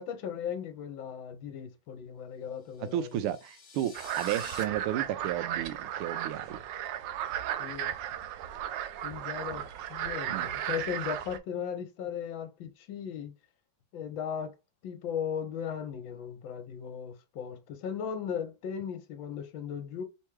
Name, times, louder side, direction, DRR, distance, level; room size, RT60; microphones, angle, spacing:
voice 1, 0.0-3.1 7.6-7.9 9.0-9.6 9.9-13.3 13.9-14.5 14.8-20.0, left 8 dB, 70° left, 1.3 m, -37 dB
sound 1, 2.7-4.6, left 5 dB, 50° left, 0.9 m, -49 dB
voice 2, 2.8-6.6 10.3-10.5, right 12 dB, 90° right, 1.5 m, -33 dB
sound 2, 3.9-11.4, right 11 dB, 75° right, 1.1 m, -35 dB
4.4 x 3.7 x 3.1 m
omnidirectional pair, 2.4 m